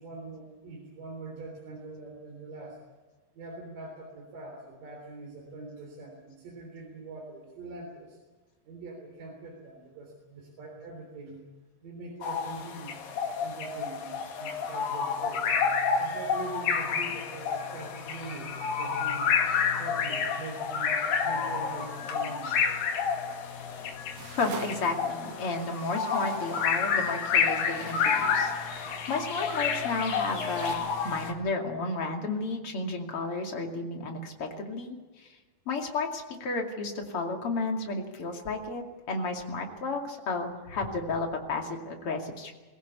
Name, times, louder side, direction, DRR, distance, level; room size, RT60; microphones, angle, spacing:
voice 1, 0.0-2.8 3.3-8.2 8.6-11.4 11.8-13.0 13.4-15.5 16.0-19.3 19.8-22.8, right 3 dB, 70° right, 0 dB, 5.3 m, -43 dB
sound 1, 12.2-31.3, left 6 dB, 80° left, 3.5 m, -29 dB
sound 2, 23.3-30.8, right 5 dB, 85° right, 4.2 m, -47 dB
voice 2, 24.4-35.3 35.7-42.5, left 3 dB, 45° left, 2 dB, 3.1 m, -32 dB
22.5 x 17.5 x 8.4 m, 1.3 s
omnidirectional pair, 4.0 m